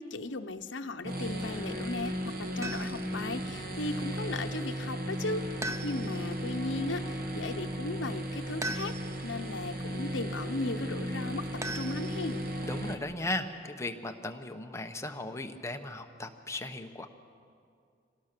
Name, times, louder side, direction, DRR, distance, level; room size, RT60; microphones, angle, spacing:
voice 1, 0.0-2.1 2.4-8.9 9.2-11.5 11.7-12.5, left 2 dB, 80° left, 5 dB, 0.8 m, -36 dB
sound 1, 1.0-12.9, equal, 50° right, 1.7 m, -36 dB
sound 2, 2.6-3.1 5.6-6.3 8.6-9.3 11.6-12.5, right 1 dB, 15° right, 0.7 m, -38 dB
voice 2, 12.6-17.1, left 2 dB, 15° left, 5 dB, 1.0 m, -37 dB
26.5 x 18.5 x 6.8 m, 2.3 s
head